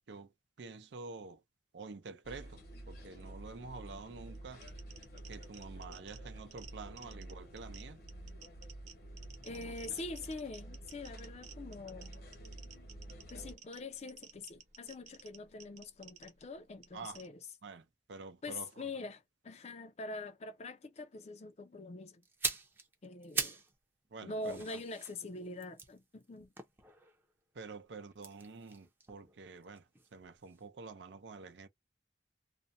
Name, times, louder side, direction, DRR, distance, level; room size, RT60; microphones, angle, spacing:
voice 1, 0.6-1.4 1.7-4.6 5.3-8.0 9.5-9.7 16.9-17.2 17.6-18.9 24.1-24.6 27.5-29.9 30.1-31.7, right 4 dB, 80° right, 0.6 m, -48 dB
sound 1, 2.2-13.6, right 1 dB, 60° left, 0.9 m, -50 dB
sound 2, 4.4-17.3, right 6 dB, 40° right, 0.9 m, -57 dB
voice 2, 9.4-12.1 13.3-17.4 18.4-22.2 23.0-23.6 24.2-26.5, left 2 dB, 40° left, 0.5 m, -44 dB
sound 3, 22.2-23.7 24.0-27.3 28.1-30.2 30.4-30.6, right 3 dB, 10° right, 0.6 m, -41 dB
2.5 x 2.1 x 2.6 m
head